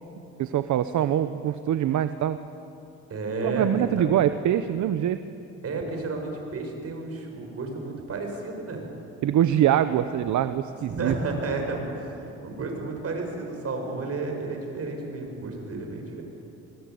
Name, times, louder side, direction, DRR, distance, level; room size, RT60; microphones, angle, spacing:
voice 1, 0.4-2.4 3.4-5.2 9.2-11.1, right 11 dB, 75° right, 11 dB, 0.9 m, -24 dB
voice 2, 3.1-4.1 5.6-8.8 10.9-16.2, right 3 dB, 50° right, 3 dB, 6.6 m, -32 dB
24.0 x 22.5 x 9.4 m, 2.7 s
cardioid pair, 90°, 30 cm